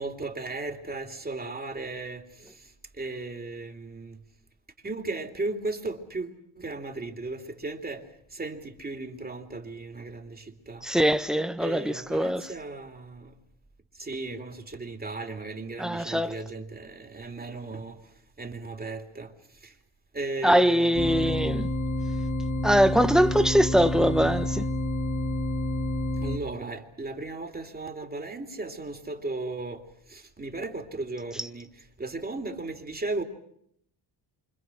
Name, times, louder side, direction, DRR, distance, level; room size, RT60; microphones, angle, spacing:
voice 1, 0.0-2.2 3.0-4.2 4.8-8.0 8.3-10.8 11.6-13.3 14.0-18.0 18.4-19.3 19.6-19.7 20.1-21.5 26.2-29.8 30.1-31.7 32.0-33.2, right 3 dB, 20° right, 3.0 m, -36 dB
voice 2, 10.8-12.4 15.8-16.3 20.4-21.7 22.6-24.6, equal, ahead, 1.4 m, -22 dB
sound 1, 20.9-26.4, left 1 dB, 40° left, 2.9 m, -29 dB
28.5 x 26.0 x 6.3 m
cardioid pair, 120°, 44 cm